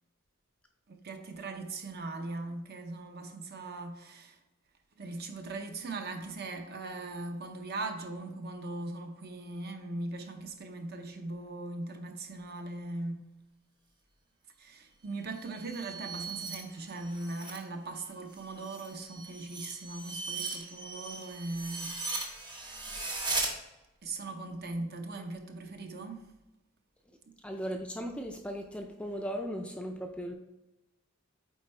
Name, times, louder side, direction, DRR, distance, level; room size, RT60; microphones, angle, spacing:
voice 1, 0.9-4.4 5.0-13.2 14.6-22.0 22.9-23.1 24.0-26.3, right 2 dB, 45° right, 0.8 m, -40 dB
sound 1, 15.2-17.6 18.0-23.5, right 3 dB, 20° right, 0.9 m, -38 dB
voice 2, 27.4-30.3, equal, 5° left, 0.4 m, -37 dB
7.9 x 4.4 x 3.3 m
head